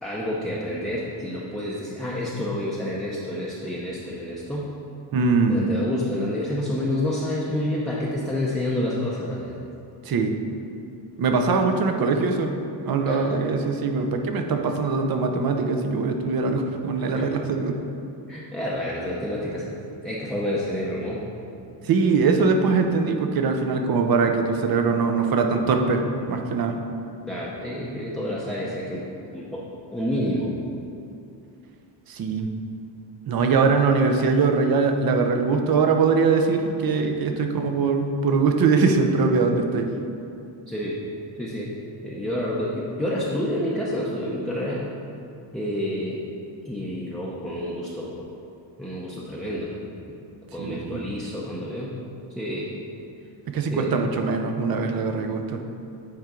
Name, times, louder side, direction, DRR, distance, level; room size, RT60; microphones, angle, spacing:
voice 1, 0.0-4.7 5.5-9.5 13.0-13.3 17.1-17.3 18.3-19.6 20.0-21.2 27.3-29.0 29.3-29.6 29.9-30.5 40.7-41.0 41.4-41.7 42.0-44.8 45.5-46.2 46.6-48.2 48.8-49.7 50.5-52.0 52.3-52.7 53.7-53.9, left 1 dB, ahead, -6 dB, 0.7 m, -29 dB
voice 2, 5.1-5.7 10.0-10.3 11.2-12.5 12.9-17.8 21.8-26.8 32.1-32.5 33.3-39.9 50.6-51.0 53.5-55.6, right 4 dB, 50° right, 5 dB, 0.7 m, -22 dB
8.8 x 4.4 x 3.8 m, 2.6 s
cardioid pair, 110°, 47 cm